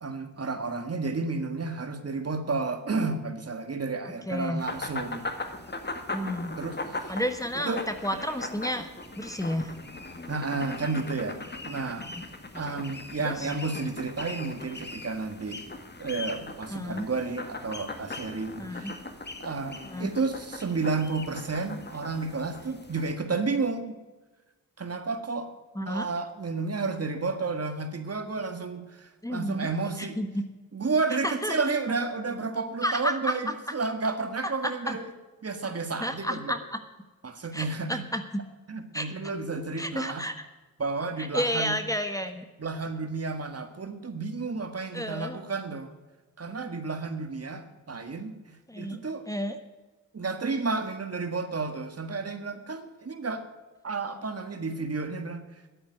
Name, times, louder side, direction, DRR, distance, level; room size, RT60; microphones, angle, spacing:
voice 1, 0.0-5.2 6.6-7.2 7.6-7.8 10.3-11.4 11.7-12.1 12.5-15.6 16.0-19.0 19.4-24.0 24.8-25.5 25.9-30.2 30.7-35.1 35.4-36.5 37.2-38.0 38.7-40.3 40.8-41.8 42.6-45.9 46.4-49.3 50.1-53.5 53.8-55.4, right 4 dB, 45° right, 8 dB, 1.8 m, -31 dB
voice 2, 4.3-4.6 6.1-6.6 7.1-8.9 9.2-9.8 13.2-13.5 16.7-17.1 18.6-18.9 19.8-20.1 25.7-26.1 29.2-29.7 30.0-30.3 31.2-31.7 32.8-33.3 34.4-34.9 36.0-36.6 37.5-38.2 38.9-39.1 39.8-40.3 41.3-42.4 44.9-45.4 48.7-49.0 49.3-49.6, equal, 10° left, 8 dB, 1.3 m, -31 dB
sound 1, 4.6-23.1, left 2 dB, 30° left, 1.7 m, -39 dB
10.5 x 8.6 x 9.5 m, 1.2 s
cardioid pair, 55°, 35 cm